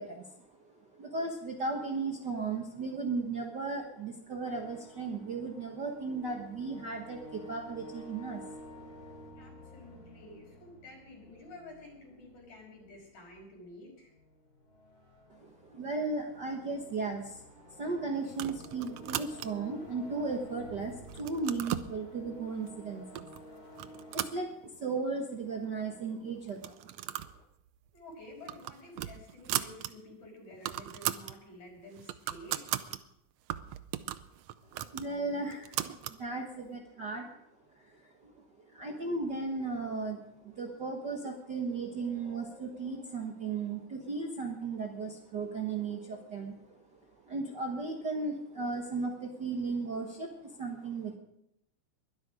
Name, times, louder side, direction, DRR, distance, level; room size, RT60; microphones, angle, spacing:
voice 1, 0.0-8.8 9.1-9.2 15.3-27.1 34.9-37.3 37.7-51.1, right 3 dB, 45° right, 1 dB, 1.5 m, -36 dB
sound 1, 4.5-24.3, equal, 30° left, 3.6 m, -51 dB
voice 2, 9.4-14.1 27.9-32.7, left 1 dB, 60° left, -1 dB, 7.0 m, -51 dB
sound 2, 18.3-19.7 20.3-20.8 21.1-21.9 22.7-22.8 23.2-23.4 23.8-25.0 25.3-25.4 25.6-25.7 26.5-27.4 27.7-27.9 28.3-29.9 30.2-30.3 30.5-31.4 31.8-33.0 33.5-36.2, right 13 dB, 75° right, 1.6 m, -37 dB
22.0 x 12.0 x 5.0 m, 0.82 s
omnidirectional pair, 3.8 m